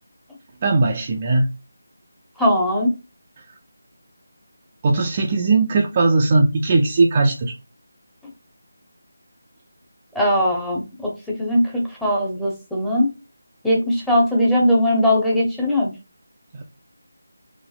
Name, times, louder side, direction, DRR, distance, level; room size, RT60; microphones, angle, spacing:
voice 1, 0.6-1.5 4.8-7.5, right 3 dB, 25° right, 0.4 m, -18 dB
voice 2, 2.4-2.9 10.1-11.1 11.4-11.6 12.0-13.1 13.6-15.9, left 1 dB, ahead, 0.7 m, -19 dB
4.0 x 2.5 x 2.3 m
figure-of-eight pair, 165°, 0 cm